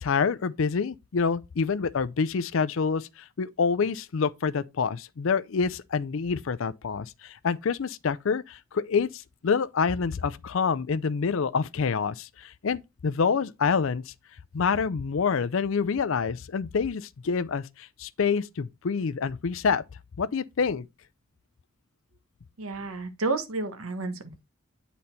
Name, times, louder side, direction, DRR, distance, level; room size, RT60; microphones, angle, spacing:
voice 1, 0.0-14.1 14.5-19.8 20.2-20.9, left 5 dB, 65° left, 0.5 m, -27 dB
voice 2, 22.6-24.4, right 3 dB, 85° right, 1.3 m, -31 dB
8.5 x 4.1 x 4.3 m
head